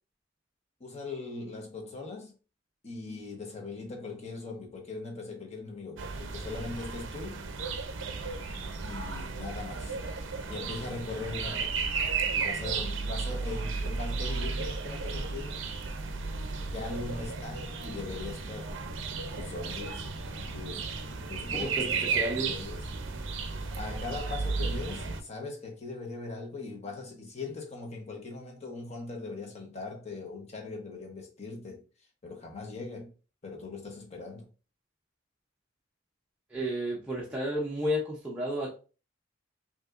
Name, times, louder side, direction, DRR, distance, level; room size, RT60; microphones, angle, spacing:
voice 1, 0.8-2.3 2.8-7.4 8.8-10.0 10.5-11.8 12.3-15.6 16.7-18.8 19.3-20.0 20.5-22.8 23.8-31.8 32.2-33.1 33.4-34.5, left 3 dB, 35° left, 1.0 m, -40 dB
sound 1, 6.0-25.2, right 4 dB, 65° right, 0.5 m, -34 dB
voice 2, 21.6-22.5 36.5-38.8, equal, 5° right, 0.6 m, -32 dB
5.3 x 2.8 x 2.5 m
head